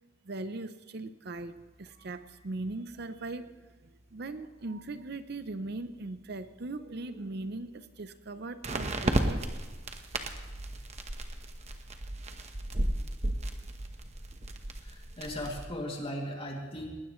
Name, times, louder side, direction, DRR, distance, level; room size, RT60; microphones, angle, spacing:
voice 1, 0.2-9.5, right 2 dB, 55° right, 11 dB, 0.7 m, -39 dB
sound 1, 1.9-2.0 8.6-15.7, right 1 dB, 35° right, 1.1 m, -34 dB
voice 2, 14.8-16.9, left 1 dB, 30° left, 0 dB, 2.5 m, -37 dB
19.5 x 19.5 x 3.2 m, 1.2 s
head